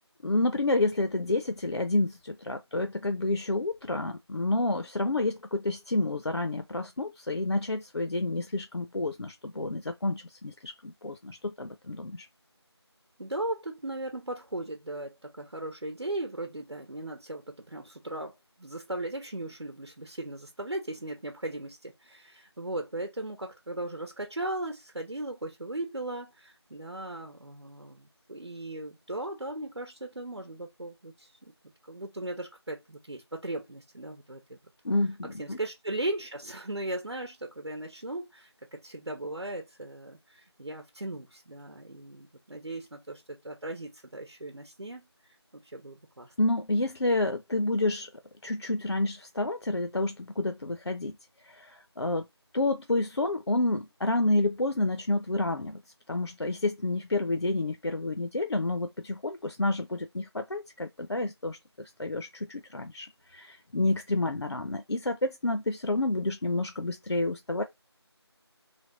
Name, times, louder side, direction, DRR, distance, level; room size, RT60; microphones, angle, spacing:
voice 1, 0.2-12.3 34.8-35.6 46.4-48.1 48.4-52.3 52.5-55.8 56.1-67.6, left 2 dB, 70° left, 0.5 m, -29 dB
voice 2, 13.2-31.5 31.8-34.6 35.4-45.1 45.5-46.3, right 1 dB, 70° right, 0.9 m, -37 dB
3.4 x 2.2 x 3.8 m
figure-of-eight pair, 175°, 14 cm